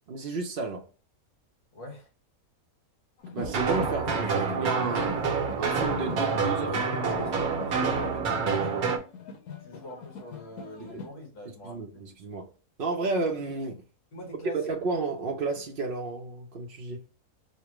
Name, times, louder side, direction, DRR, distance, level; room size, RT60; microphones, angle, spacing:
voice 1, 0.1-0.9 3.3-5.2 5.6-6.7 10.9-11.0 11.6-12.5 12.8-13.8 14.6-17.0, right 3 dB, 55° right, 0.7 m, -32 dB
voice 2, 1.7-2.1 6.1-9.0 9.6-12.0 14.1-14.6, equal, 60° left, 1.9 m, -42 dB
sound 1, 3.2-11.1, left 6 dB, 85° left, 1.2 m, -42 dB
sound 2, 3.4-9.0, right 5 dB, 80° right, 1.2 m, -27 dB
5.4 x 2.2 x 3.0 m
omnidirectional pair, 1.5 m